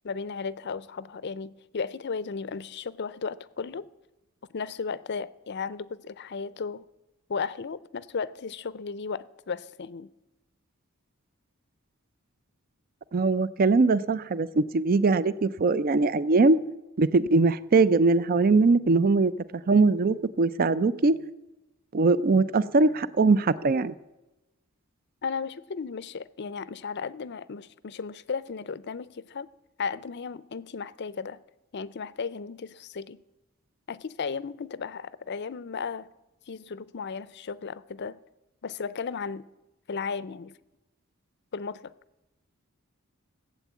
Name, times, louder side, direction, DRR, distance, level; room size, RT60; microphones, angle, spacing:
voice 1, 0.0-3.9 4.5-6.8 7.3-10.1 25.2-29.5 29.8-31.4 31.7-33.2 33.9-36.1 36.5-38.2 38.6-39.5 39.9-40.5 41.5-41.9, left 5 dB, 50° left, 0.5 m, -35 dB
voice 2, 13.1-16.6 17.0-19.3 19.7-21.1 21.9-23.9, right 3 dB, 45° right, 0.5 m, -21 dB
16.0 x 8.2 x 8.3 m
head